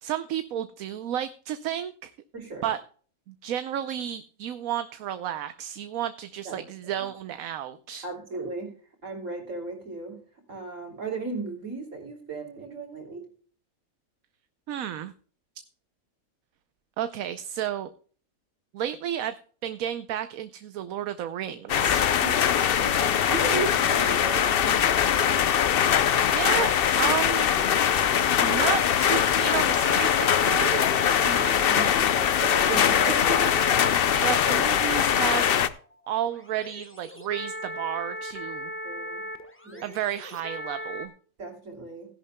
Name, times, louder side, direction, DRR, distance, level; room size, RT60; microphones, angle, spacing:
voice 1, 0.0-2.1 2.6-2.8 3.3-8.0 14.7-15.1 17.0-17.9 18.7-19.3 19.6-22.0 26.3-27.5 28.4-30.2 30.4-30.8 34.1-35.6 36.1-38.7 39.8-41.1, right 10 dB, 75° right, 10 dB, 1.1 m, -32 dB
voice 2, 2.3-2.7 6.5-6.6 6.9-7.0 8.0-8.7 9.0-10.2 10.5-13.3 22.2-22.4 22.8-25.4 31.2-33.5 38.8-39.2 39.6-40.0 41.4-42.1, right 3 dB, 60° right, 1 dB, 3.6 m, -35 dB
sound 1, 21.7-35.7, left 9 dB, 55° left, 0.7 m, -22 dB
sound 2, 27.9-41.1, equal, 10° left, 1.1 m, -39 dB
16.5 x 11.0 x 2.2 m, 0.43 s
omnidirectional pair, 1.5 m